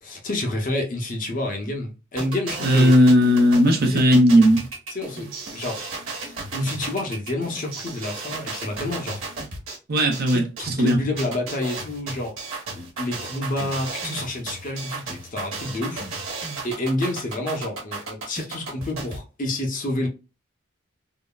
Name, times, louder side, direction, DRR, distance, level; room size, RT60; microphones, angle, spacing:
voice 1, 0.0-2.9 3.9-4.0 4.9-9.2 10.3-12.4 12.7-16.1 16.6-20.1, left 1 dB, 40° left, 0.7 m, -29 dB
sound 1, 2.2-19.2, right 3 dB, 70° right, 1.3 m, -34 dB
voice 2, 2.6-4.7 9.9-11.0, equal, 45° right, 0.7 m, -17 dB
3.7 x 2.1 x 2.2 m
head